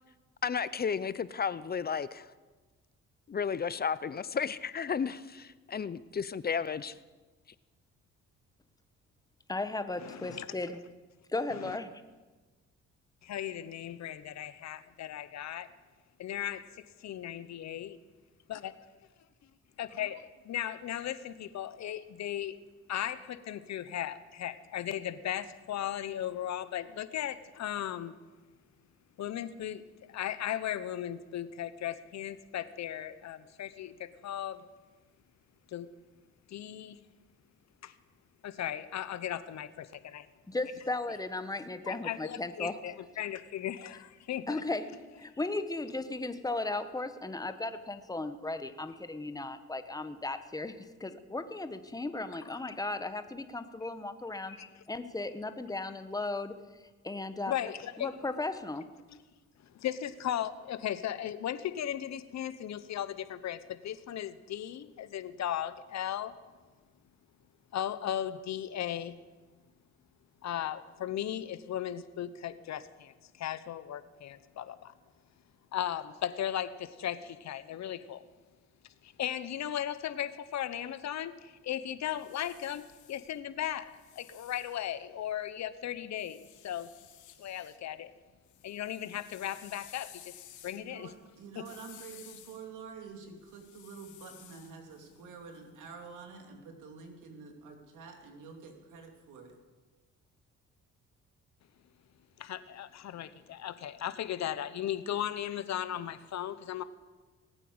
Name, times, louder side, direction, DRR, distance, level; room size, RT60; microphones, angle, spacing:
voice 1, 0.4-2.3 3.3-6.9, left 6 dB, 30° left, 16 dB, 0.6 m, -33 dB
voice 2, 9.5-10.8 11.3-12.0 40.5-42.8 44.5-44.8 45.2-56.6 57.0-57.5 58.0-58.9, left 2 dB, 10° left, 10 dB, 1.2 m, -36 dB
voice 3, 10.0-10.5 11.5-11.8 13.2-15.7 16.2-16.7 17.0-18.0 18.5-18.7 19.8-22.6 22.9-28.1 29.2-34.6 35.7-35.9 36.5-37.0 37.8-37.9 38.4-40.3 41.9-44.6 54.7-54.8 57.5-58.1 59.7-66.4 67.7-69.2 70.4-74.9 75.7-78.2 79.0-86.9 87.4-88.1 88.6-90.4 90.6-91.1 91.6-91.7 102.4-106.8, left 11 dB, 65° left, 13 dB, 1.0 m, -37 dB
sound 1, 81.9-85.5 86.2-87.8 88.2-96.1, left 11 dB, 80° left, 1.5 m, -56 dB
voice 4, 90.7-99.6, right 5 dB, 80° right, 3 dB, 2.8 m, -48 dB
19.0 x 9.1 x 8.0 m, 1.3 s
cardioid pair, 90°, 30 cm